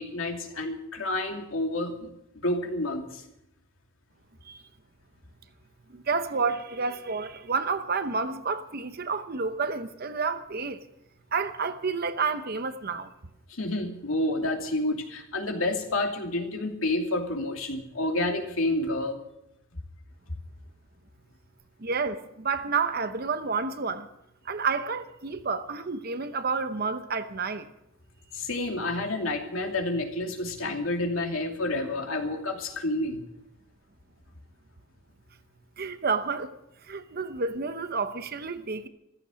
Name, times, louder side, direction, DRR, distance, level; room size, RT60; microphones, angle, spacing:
voice 1, 0.0-3.2 13.5-19.2 28.3-33.2, left 2 dB, 80° left, 2.7 m, -29 dB
voice 2, 5.9-10.8 11.3-13.1 21.8-24.1 24.4-27.7 35.8-36.5 36.9-38.9, right 4 dB, 50° right, 0.8 m, -30 dB
14.5 x 14.0 x 6.3 m
head